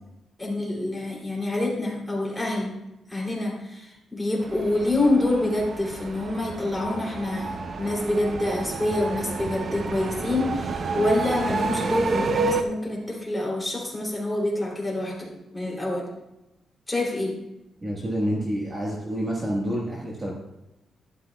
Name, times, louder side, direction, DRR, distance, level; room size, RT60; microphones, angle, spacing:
voice 1, 0.4-2.7 3.1-16.0 16.9-17.3, left 2 dB, 5° left, -4 dB, 2.9 m, -27 dB
sound 1, 4.4-12.6, right 4 dB, 40° right, 0.6 m, -30 dB
voice 2, 17.8-20.3, equal, 25° right, -3 dB, 1.4 m, -28 dB
12.0 x 11.5 x 2.3 m, 0.93 s
wide cardioid pair, 170°, 0 cm